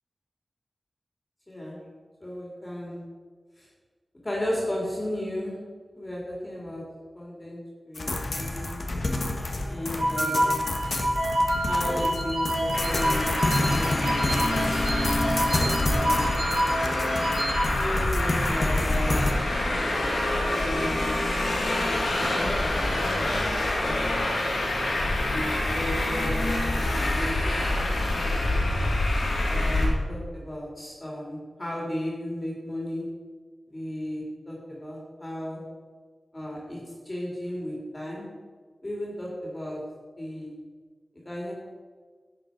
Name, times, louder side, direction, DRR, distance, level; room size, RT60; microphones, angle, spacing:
voice 1, 1.5-1.8 2.2-3.0 3.6-3.7 4.2-5.6 5.9-6.8 7.1-8.8 9.7-10.6 11.6-14.1 15.5-16.4 17.8-19.3 20.6-21.3 21.7-24.6 25.3-28.7 29.4-33.1 33.7-35.6 36.3-36.8 37.0-38.3 38.8-39.8 40.2-40.6 41.2-41.5, left 1 dB, 25° left, -4 dB, 3.4 m, -35 dB
sound 1, 7.9-19.3, left 2 dB, 55° left, 1.4 m, -30 dB
sound 2, 10.0-17.6, equal, 65° right, 3.4 m, -28 dB
Traffic noise roadway noise, 12.7-29.8, left 1 dB, 90° left, 2.9 m, -26 dB
11.5 x 7.7 x 5.2 m, 1.5 s
wide cardioid pair, 65°, 0 cm